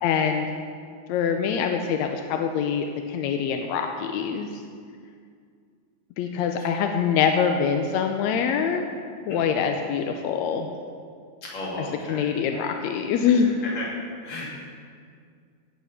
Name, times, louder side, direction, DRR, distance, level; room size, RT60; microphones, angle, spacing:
voice 1, 0.0-0.5 1.1-4.5 6.2-8.9 9.3-10.7 11.8-13.5, left 7 dB, 80° left, 4 dB, 1.8 m, -24 dB
voice 2, 11.4-12.3 13.6-13.8 14.2-14.5, left 1 dB, 60° left, -5 dB, 4.0 m, -34 dB
16.5 x 6.8 x 5.8 m, 2.2 s
omnidirectional pair, 3.5 m